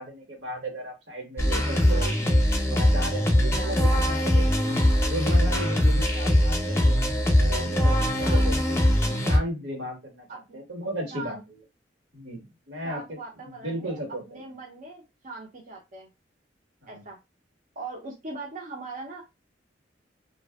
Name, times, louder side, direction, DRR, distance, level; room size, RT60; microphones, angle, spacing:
voice 1, 0.0-2.2 2.5-4.8 5.0-6.9 7.3-8.8 9.3-11.4 12.1-13.2 13.4-14.4 16.8-17.0, right 1 dB, 90° right, 0 dB, 1.4 m, -35 dB
sound 1, 1.4-9.4, left 1 dB, 15° left, 0.6 m, -22 dB
voice 2, 3.6-4.3 8.2-8.5 10.3-10.6 11.1-11.4 12.8-14.0 14.3-16.1 16.9-17.2 17.8-19.2, right 3 dB, 45° right, -1 dB, 0.6 m, -40 dB
2.6 x 2.5 x 2.3 m, 0.23 s
head